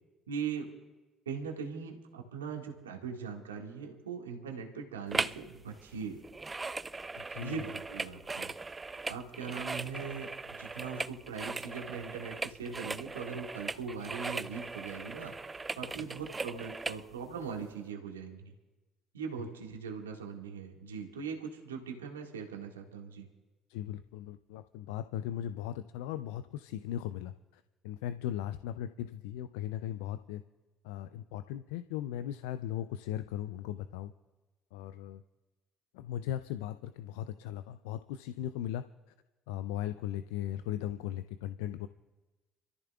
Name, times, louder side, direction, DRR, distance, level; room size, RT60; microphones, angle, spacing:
voice 1, 0.3-0.7 1.2-6.2 7.4-8.5 9.0-15.3 15.8-18.5 19.1-23.3, right 6 dB, 90° right, 0 dB, 1.8 m, -40 dB
sound 1, 5.1-5.5 5.7-17.0 17.5-17.6, right 3 dB, 25° right, 0.5 m, -39 dB
voice 2, 7.2-7.7 23.7-30.4 30.8-34.1 34.7-35.2 35.9-38.8 39.5-41.9, left 11 dB, 75° left, 11 dB, 0.4 m, -38 dB
29.5 x 13.5 x 2.4 m, 1.2 s
hypercardioid pair, 55°, 0 cm